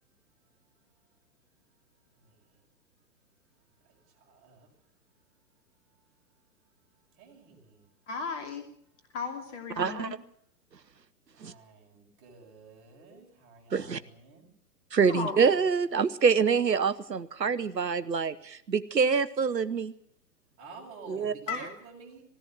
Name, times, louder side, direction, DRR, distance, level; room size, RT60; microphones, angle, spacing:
voice 1, 2.1-2.5 3.8-4.7 7.2-7.9 11.3-14.5 20.6-22.2, right 4 dB, 25° right, 0 dB, 7.3 m, -51 dB
voice 2, 8.1-8.7 9.1-10.2 15.1-15.4 21.5-21.7, left 5 dB, 45° left, 5 dB, 2.9 m, -35 dB
voice 3, 9.8-10.2 11.4-11.5 13.7-14.0 14.9-19.9 21.1-21.3, right 5 dB, 85° right, 16 dB, 1.0 m, -26 dB
20.5 x 17.0 x 7.7 m, 0.67 s
figure-of-eight pair, 120°, 49 cm